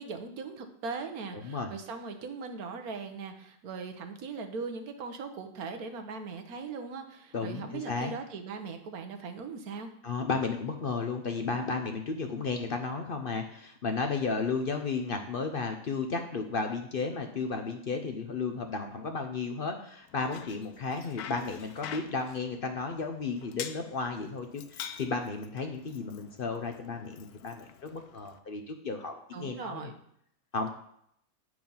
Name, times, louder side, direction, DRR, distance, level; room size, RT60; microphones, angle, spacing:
voice 1, 0.0-9.9 29.3-29.9, right 4 dB, 75° right, 6 dB, 1.4 m, -39 dB
voice 2, 7.3-8.1 10.0-29.8 30.5-30.7, left 4 dB, 50° left, 5 dB, 0.7 m, -33 dB
Bicycle, 20.1-28.4, left 9 dB, 85° left, 1.1 m, -46 dB
9.1 x 4.7 x 5.4 m, 0.71 s
omnidirectional pair, 1.6 m